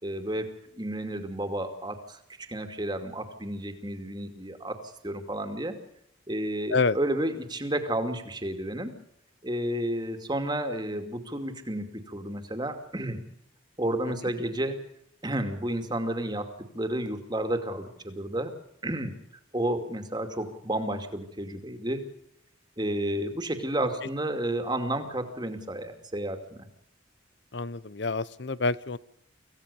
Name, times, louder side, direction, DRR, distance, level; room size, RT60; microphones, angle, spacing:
voice 1, 0.0-0.5 0.7-2.2 2.5-5.8 6.3-8.9 9.4-13.2 13.8-14.8 15.2-18.5 18.8-19.1 19.5-22.1 22.8-26.7, right 1 dB, 20° right, 6 dB, 2.6 m, -31 dB
voice 2, 27.5-29.0, left 4 dB, 60° left, 19 dB, 0.8 m, -28 dB
25.5 x 16.5 x 6.9 m, 0.74 s
head